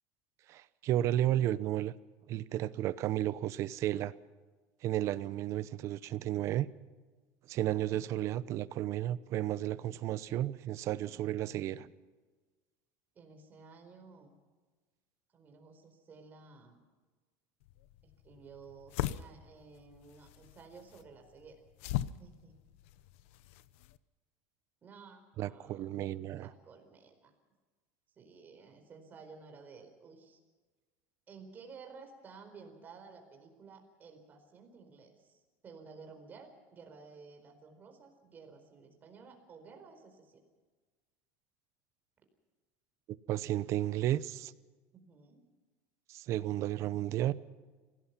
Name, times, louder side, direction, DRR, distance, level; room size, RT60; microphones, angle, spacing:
voice 1, 0.5-1.9 2.3-4.1 4.8-6.7 7.5-11.9 25.4-26.5 43.3-44.5 46.1-47.3, right 13 dB, 40° right, 17 dB, 0.8 m, -33 dB
voice 2, 13.1-14.4 15.3-16.8 18.0-21.6 22.2-22.6 24.8-25.9 26.4-27.3 28.1-30.4 31.3-40.4 44.9-45.4, right 5 dB, 25° right, 4 dB, 4.4 m, -54 dB
sound 1, 17.6-24.0, left 13 dB, 75° left, 0.8 m, -41 dB
26.5 x 17.5 x 5.9 m, 1.3 s
cardioid pair, 155°, 7 cm